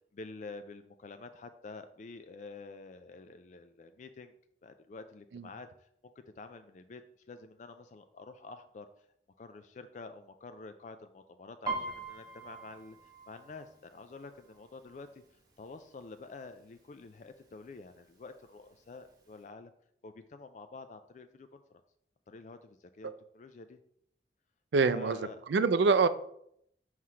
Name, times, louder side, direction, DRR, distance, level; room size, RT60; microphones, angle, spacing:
voice 1, 0.1-4.3 4.6-5.9 6.4-7.0 7.3-9.1 9.4-15.2 15.6-19.7 20.0-21.8 22.3-23.8 24.9-25.4, left 3 dB, 40° left, 9 dB, 0.3 m, -48 dB
Piano, 11.7-15.3 15.7-16.1 16.4-17.0 17.6-17.7 18.0-19.0 19.4-19.5, right 3 dB, 20° right, 0.9 m, -41 dB
voice 2, 24.7-26.1, right 4 dB, 75° right, 14 dB, 0.4 m, -26 dB
5.7 x 3.1 x 5.6 m, 0.71 s
head